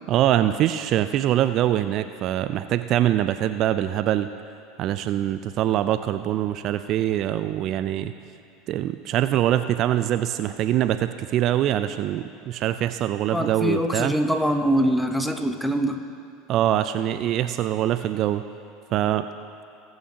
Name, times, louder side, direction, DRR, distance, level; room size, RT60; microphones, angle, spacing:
voice 1, 0.1-4.3 4.8-8.1 8.7-14.1 16.5-18.4 18.9-19.2, right 12 dB, 50° right, 11 dB, 0.3 m, -23 dB
voice 2, 13.3-16.0, equal, 5° left, 6 dB, 0.9 m, -23 dB
21.0 x 7.7 x 2.8 m, 2.5 s
hypercardioid pair, 80°, 0 cm